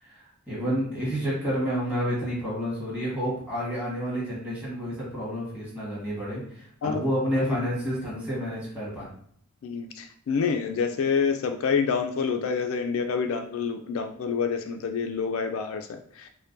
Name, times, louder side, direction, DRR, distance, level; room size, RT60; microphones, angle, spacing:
voice 1, 0.0-9.1, equal, 5° right, -8 dB, 1.4 m, -30 dB
voice 2, 9.6-16.3, left 5 dB, 70° left, 6 dB, 0.3 m, -27 dB
4.4 x 2.1 x 2.6 m, 0.63 s
head